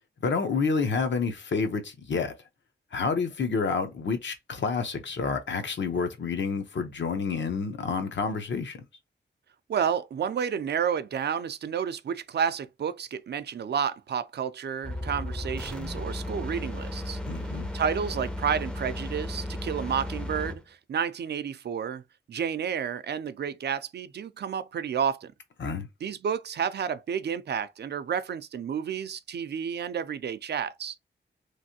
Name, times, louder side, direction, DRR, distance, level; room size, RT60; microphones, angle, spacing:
voice 1, 0.2-2.3 2.9-8.8 17.3-17.7 25.6-25.9, left 5 dB, 70° left, 0.8 m, -29 dB
voice 2, 9.7-17.2 17.7-22.0 22.3-25.3 26.0-30.9, right 7 dB, 60° right, 0.4 m, -30 dB
sound 1, 14.8-20.6, left 1 dB, 5° left, 0.5 m, -35 dB
3.2 x 2.6 x 2.7 m
wide cardioid pair, 125°, 20 cm